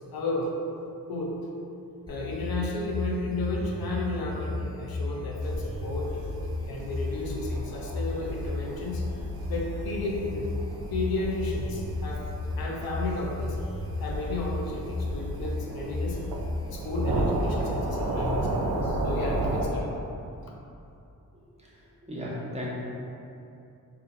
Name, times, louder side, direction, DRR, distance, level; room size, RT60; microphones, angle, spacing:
voice 1, 0.1-0.5 1.1-1.3 2.1-6.2 6.7-9.0 9.5-10.5 10.9-12.2 12.6-13.6 14.0-16.2 16.7-19.9, left 2 dB, 70° left, -2 dB, 0.6 m, -33 dB
sound 1, 2.1-18.1, left 2 dB, 10° left, 0.5 m, -34 dB
sound 2, 5.4-19.6, right 2 dB, 75° right, 0.5 m, -34 dB
voice 2, 22.1-22.7, left 1 dB, 15° right, -6 dB, 1.0 m, -34 dB
2.7 x 2.4 x 4.0 m, 2.7 s
cardioid pair, 55°, 37 cm